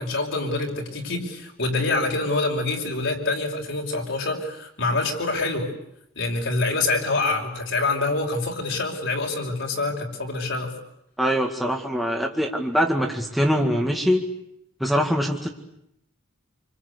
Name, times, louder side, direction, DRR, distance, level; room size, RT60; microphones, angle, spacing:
voice 1, 0.0-5.7 6.2-10.7, left 3 dB, 60° left, 1 dB, 5.4 m, -26 dB
voice 2, 11.2-14.2 14.8-15.5, equal, ahead, 0 dB, 2.2 m, -23 dB
27.5 x 25.5 x 8.4 m, 0.77 s
head